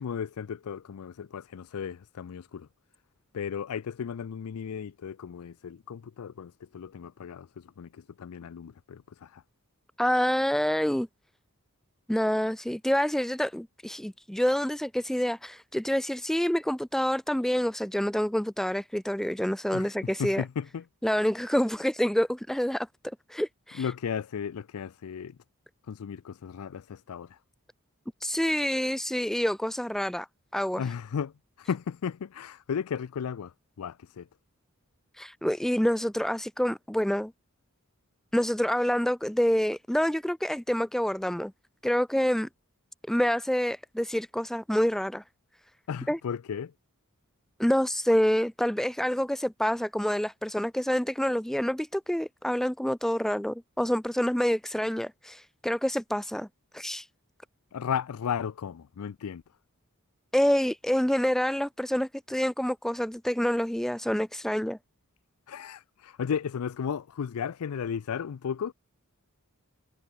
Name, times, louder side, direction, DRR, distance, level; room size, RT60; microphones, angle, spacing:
voice 1, 0.0-2.7 3.3-9.4 19.7-19.9 20.2-20.8 23.8-25.4 25.9-27.4 30.8-31.3 31.6-33.5 33.8-34.3 45.9-46.7 57.7-59.4 65.5-68.7, left 7 dB, 85° left, 0.4 m, -35 dB
voice 2, 10.0-11.1 12.1-20.4 21.0-22.9 23.3-23.9 28.2-30.3 30.5-30.9 35.1-37.3 38.3-41.5 41.8-42.5 43.1-45.2 46.1-46.2 47.6-56.5 56.7-57.1 60.3-64.8, equal, ahead, 0.3 m, -27 dB
head